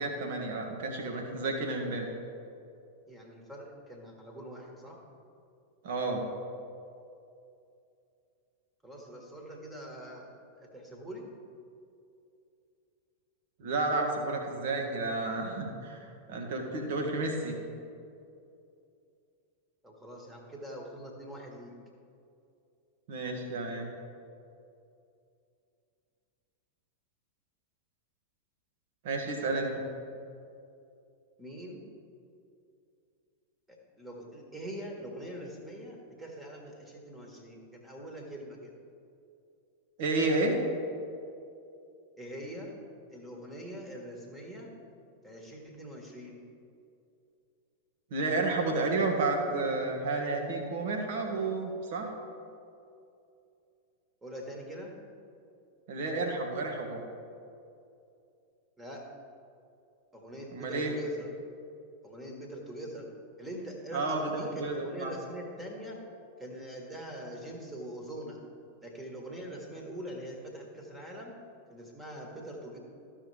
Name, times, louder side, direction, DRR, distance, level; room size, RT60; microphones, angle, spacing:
voice 1, 0.0-2.1 5.8-6.2 13.6-16.0 16.3-17.6 23.1-23.9 29.0-29.9 40.0-40.6 48.1-52.1 55.9-57.0 60.5-60.9 63.9-65.1, right 3 dB, 55° right, 2 dB, 1.5 m, -31 dB
voice 2, 3.1-5.0 8.8-11.3 19.8-21.7 31.4-31.8 33.7-38.8 42.2-42.8 43.1-44.7 45.2-46.4 54.2-54.9 58.8-59.1 60.1-61.3 62.0-63.1 63.4-66.0 66.4-68.4 68.8-71.3 71.7-72.8, equal, 10° right, 0 dB, 1.7 m, -43 dB
14.5 x 5.6 x 3.4 m, 2.5 s
figure-of-eight pair, 90°, 0 cm